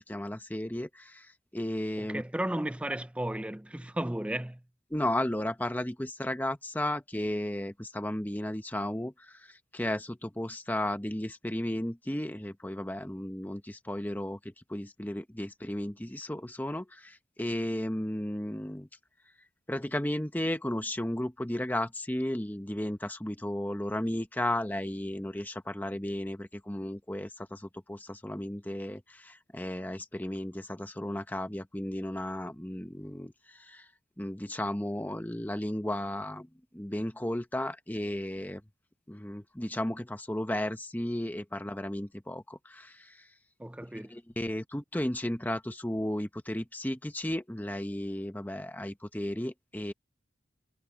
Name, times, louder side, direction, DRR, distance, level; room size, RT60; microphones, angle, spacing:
voice 1, 0.0-2.2 4.9-14.4 14.7-18.9 19.7-33.9 34.2-36.5 36.7-38.6 39.1-43.2 44.1-49.9, left 1 dB, 10° left, 0.9 m, -34 dB
voice 2, 2.0-4.6 43.6-44.2, right 1 dB, 5° right, 0.4 m, -34 dB
head